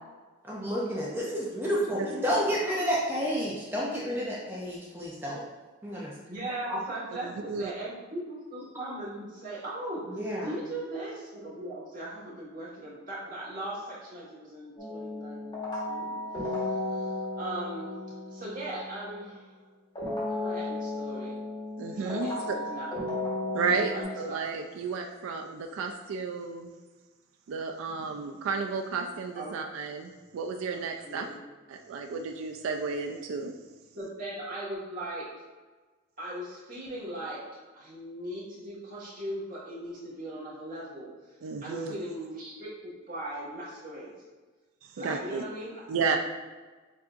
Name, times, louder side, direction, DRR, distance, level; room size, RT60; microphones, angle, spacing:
voice 1, 0.4-5.4 5.8-6.1 6.7-6.8 10.2-10.5, equal, 10° right, -6 dB, 0.5 m, -30 dB
voice 2, 1.7-2.5 6.3-10.0 10.4-19.5 20.2-21.4 21.9-23.0 23.7-24.0 24.3-24.4 29.3-29.6 30.7-31.4 33.9-35.3 36.2-37.4 37.7-44.1 45.0-45.8, right 1 dB, 40° right, -8 dB, 1.5 m, -39 dB
voice 3, 7.2-7.7 21.8-22.3 23.5-26.7 27.5-31.3 31.7-33.5 41.4-42.0 44.8-45.4 45.9-46.2, right 5 dB, 75° right, 3 dB, 0.4 m, -32 dB
sound 1, 14.8-19.4 19.9-24.0, left 2 dB, 20° left, 1.2 m, -34 dB
7.2 x 2.6 x 2.4 m, 1.3 s
head